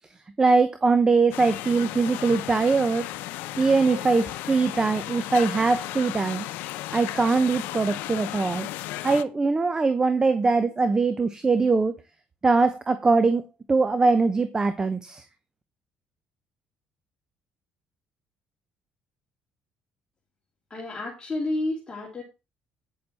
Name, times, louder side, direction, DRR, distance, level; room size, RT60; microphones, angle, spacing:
voice 1, 0.4-3.1 3.6-6.5 6.9-8.7 9.0-11.9 12.4-13.4 13.7-15.2, right 4 dB, 25° right, 11 dB, 0.9 m, -22 dB
sound 1, 1.3-9.2, left 15 dB, 85° left, 0.6 m, -35 dB
voice 2, 20.7-22.2, left 2 dB, 25° left, -3 dB, 2.7 m, -30 dB
9.3 x 6.8 x 4.3 m, 0.27 s
cardioid pair, 95°, 3 cm